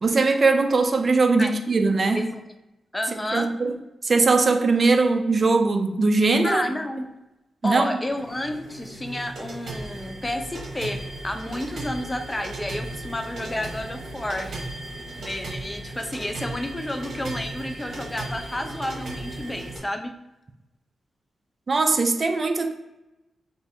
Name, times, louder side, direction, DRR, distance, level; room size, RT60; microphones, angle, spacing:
voice 1, 0.0-2.2 3.3-3.7 4.0-6.7 7.6-7.9 21.7-22.7, right 3 dB, 45° right, 7 dB, 0.4 m, -20 dB
voice 2, 2.9-3.5 6.4-7.1 7.6-14.6 15.2-20.2, left 1 dB, 20° left, 6 dB, 0.4 m, -31 dB
sound 1, 8.0-19.8, right 2 dB, 70° right, 1.0 m, -36 dB
3.4 x 2.5 x 4.2 m, 0.97 s
cardioid pair, 70°, 0 cm